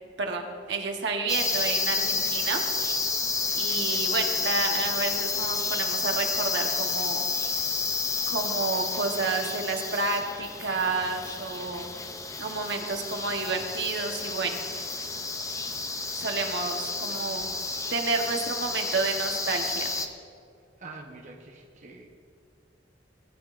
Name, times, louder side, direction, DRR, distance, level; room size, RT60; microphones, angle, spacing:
voice 1, 0.2-2.6 3.5-7.3 8.3-11.9 12.4-14.7 16.2-17.5 17.9-19.9, right 3 dB, 65° right, 3 dB, 1.0 m, -30 dB
sound 1, 1.3-20.1, left 4 dB, 15° left, 0.5 m, -30 dB
voice 2, 20.8-22.1, right 3 dB, 40° right, 0 dB, 0.9 m, -45 dB
17.0 x 9.6 x 2.5 m, 2.2 s
head